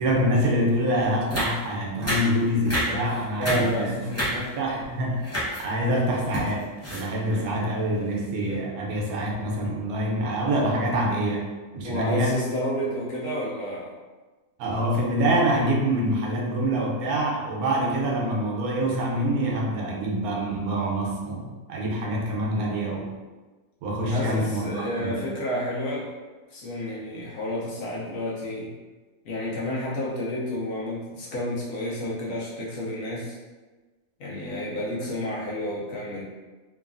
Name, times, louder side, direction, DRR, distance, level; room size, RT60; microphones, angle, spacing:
voice 1, 0.0-3.9 4.3-5.3 5.6-11.5 11.7-12.4 14.6-23.1 23.8-25.2, right 1 dB, 85° right, -1 dB, 1.1 m, -25 dB
sound 1, 0.7-0.8 1.3-1.7 2.0-2.4 2.7-3.0 3.3-3.7 4.1-4.7 5.2-5.7 6.0-7.4 7.9-8.1 8.3-8.5, equal, 15° left, 0.6 m, -29 dB
voice 2, 3.1-4.4 11.8-13.9 24.1-26.2 26.5-28.7 29.2-33.4 34.2-36.2, left 1 dB, 80° left, -5 dB, 1.1 m, -30 dB
3.1 x 2.3 x 2.4 m, 1.3 s
omnidirectional pair, 1.5 m